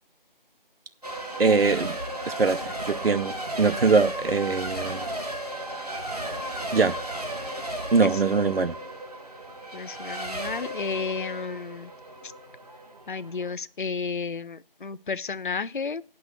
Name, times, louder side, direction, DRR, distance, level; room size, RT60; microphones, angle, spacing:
Race car auto racing / Accelerating revving vroom / Mechanisms, 1.0-13.5, right 1 dB, 40° right, 1.3 m, -35 dB
voice 1, 1.4-2.0 2.3-2.6 2.9-5.0 6.7-7.0 7.9-8.7, right 4 dB, 85° right, 0.7 m, -22 dB
voice 2, 9.7-11.9 13.1-16.0, left 5 dB, 60° left, 0.4 m, -32 dB
8.4 x 6.1 x 8.0 m
figure-of-eight pair, 175°, 29 cm